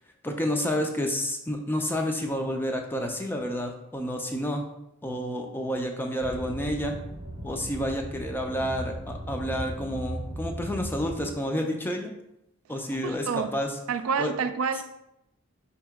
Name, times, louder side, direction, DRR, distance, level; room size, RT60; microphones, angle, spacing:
voice 1, 0.2-4.6 5.0-7.0 7.4-12.1 12.7-13.8 14.2-14.3, equal, 10° left, 3 dB, 0.4 m, -30 dB
sound 1, 6.2-11.3, right 1 dB, 40° right, 0.8 m, -37 dB
voice 2, 13.0-13.5 13.9-14.8, right 6 dB, 70° right, 9 dB, 0.3 m, -28 dB
5.2 x 2.8 x 3.5 m, 0.85 s
head